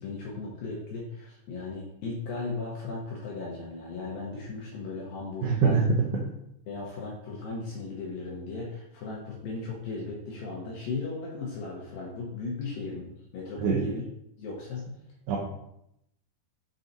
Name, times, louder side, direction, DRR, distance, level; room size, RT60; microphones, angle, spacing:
voice 1, 0.0-5.9 6.7-14.0 14.4-14.8, left 3 dB, 75° left, -3 dB, 2.2 m, -36 dB
voice 2, 5.4-5.8 6.1-6.2 13.6-13.9 15.3-15.4, right 6 dB, 80° right, -3 dB, 2.1 m, -24 dB
7.3 x 4.0 x 4.0 m, 0.79 s
omnidirectional pair, 5.3 m